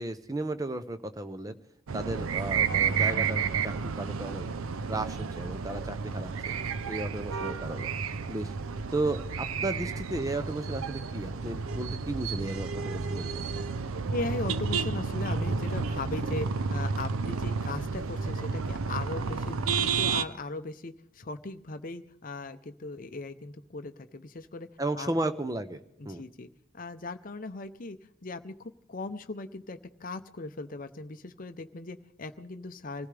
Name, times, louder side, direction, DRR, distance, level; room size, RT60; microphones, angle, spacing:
voice 1, 0.0-1.5 1.9-4.5 4.9-6.5 6.9-7.9 8.3-8.5 8.9-13.3 24.8-25.8 26.1-26.2, right 2 dB, 15° right, 10 dB, 0.6 m, -34 dB
sound 1, 1.9-20.2, right 5 dB, 75° right, 0.5 m, -31 dB
voice 2, 14.1-24.7 24.9-25.1 26.0-26.5 26.7-28.0 28.2-33.1, left 3 dB, 40° left, 9 dB, 0.7 m, -38 dB
25.0 x 15.5 x 3.4 m, 0.71 s
head